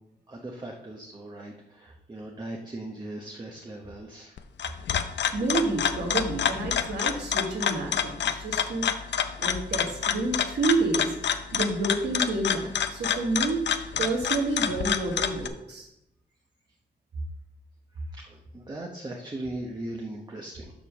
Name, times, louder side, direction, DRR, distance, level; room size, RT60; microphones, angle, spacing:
voice 1, 0.3-4.4 18.1-20.7, right 1 dB, 25° right, 0 dB, 0.9 m, -39 dB
sound 1, 4.4-15.5, left 8 dB, 85° left, 0.6 m, -28 dB
voice 2, 5.3-11.1 11.5-13.6 14.0-15.9, right 2 dB, 70° right, -1 dB, 1.5 m, -29 dB
7.2 x 5.2 x 6.2 m, 0.88 s
wide cardioid pair, 135°, 18 cm